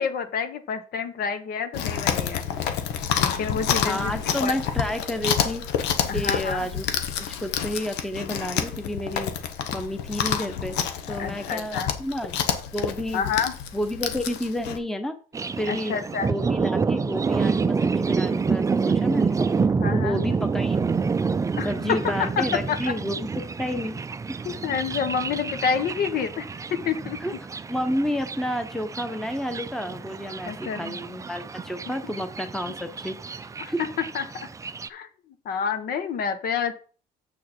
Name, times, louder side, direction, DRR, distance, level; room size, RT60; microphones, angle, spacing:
voice 1, 0.0-2.4 3.2-4.1 4.4-4.6 6.1-6.7 11.1-11.9 13.1-13.5 15.7-16.3 19.8-20.2 21.6-22.9 24.4-26.4 26.8-27.2 30.5-31.0 33.6-33.7 34.1-34.5 34.9-35.1 35.4-36.8, left 6 dB, 65° left, 9 dB, 1.3 m, -28 dB
Chewing mastication, 1.7-14.8, left 8 dB, 90° left, 1.1 m, -28 dB
voice 2, 3.8-5.6 6.1-6.9 7.2-9.3 9.7-10.8 11.1-12.4 12.7-13.3 13.7-15.1 15.6-19.4 19.9-20.8 21.6-24.0 27.2-27.4 27.7-33.8, equal, 5° left, 8 dB, 0.9 m, -30 dB
Thunder, 15.3-34.9, right 5 dB, 20° right, 0.4 m, -28 dB
7.3 x 6.4 x 4.4 m, 0.38 s
cardioid pair, 110°, 17 cm